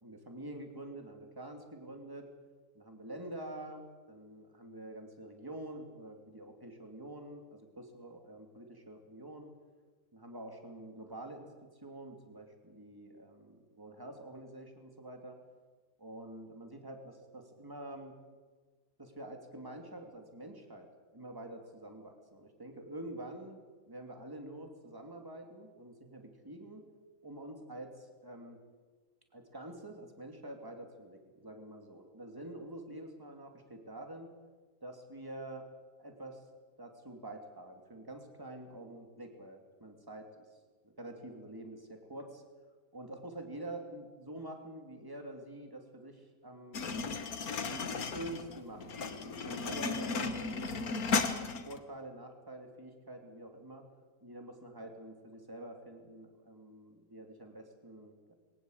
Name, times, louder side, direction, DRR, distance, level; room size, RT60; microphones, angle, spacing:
voice 1, 0.0-2.3 2.7-9.5 10.1-15.4 16.0-18.1 19.0-23.6 23.8-26.8 27.2-28.6 29.3-34.3 34.8-35.6 36.0-36.4 36.8-42.4 42.9-46.9 47.6-50.8 51.6-53.9 54.2-58.3, right 1 dB, 15° right, 4 dB, 2.8 m, -47 dB
sound 1, 46.7-51.8, left 4 dB, 70° left, 1.9 m, -35 dB
22.0 x 18.0 x 8.1 m, 1.4 s
omnidirectional pair, 1.6 m